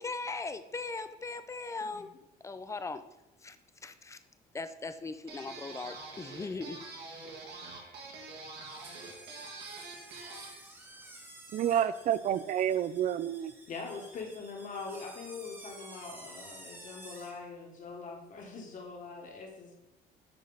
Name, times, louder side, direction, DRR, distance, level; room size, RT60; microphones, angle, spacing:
voice 1, 0.0-2.1 2.4-3.0 3.4-3.6 3.8-4.2 4.5-6.9, left 3 dB, 15° left, 11 dB, 0.4 m, -39 dB
sound 1, 5.3-10.6, right 3 dB, 80° right, 1.7 m, -46 dB
sound 2, 8.6-17.4, right 1 dB, 10° right, 1.2 m, -51 dB
voice 2, 11.5-13.5, right 10 dB, 50° right, 15 dB, 0.4 m, -29 dB
voice 3, 13.7-19.8, left 4 dB, 50° left, 1 dB, 1.6 m, -43 dB
9.4 x 3.3 x 4.0 m, 0.92 s
cardioid pair, 110°, 17 cm